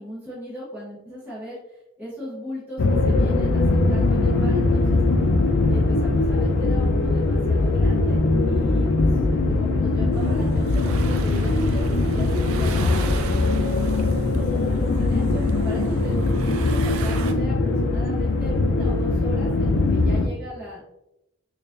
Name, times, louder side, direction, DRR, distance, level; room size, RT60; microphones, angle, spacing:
voice 1, 0.0-5.0 5.7-8.2 8.5-13.4 13.8-20.8, equal, 10° right, -9 dB, 0.8 m, -37 dB
sound 1, 2.8-20.3, left 2 dB, 60° left, 0.4 m, -21 dB
sound 2, 10.1-17.3, right 5 dB, 80° right, 0.4 m, -38 dB
4.7 x 2.3 x 2.5 m, 0.89 s
head